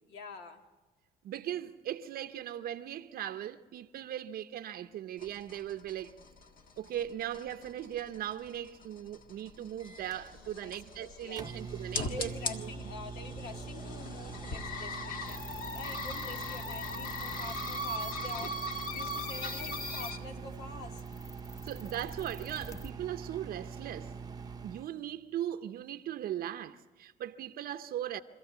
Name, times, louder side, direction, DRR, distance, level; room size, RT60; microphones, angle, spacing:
voice 1, 0.1-0.6 10.3-11.5 12.1-15.4 15.7-21.0, left 4 dB, 80° left, 2.1 m, -46 dB
voice 2, 1.2-6.1 6.8-12.7 21.6-24.1 24.6-28.2, right 11 dB, 60° right, 0.7 m, -38 dB
Kettle sounds, 5.2-20.2, left 2 dB, 55° left, 1.6 m, -40 dB
Microwave oven, 9.8-24.9, right 5 dB, 25° right, 0.8 m, -44 dB
sound 1, 15.3-22.9, left 1 dB, 20° left, 1.1 m, -48 dB
26.0 x 14.5 x 8.1 m
cardioid pair, 110°, 17 cm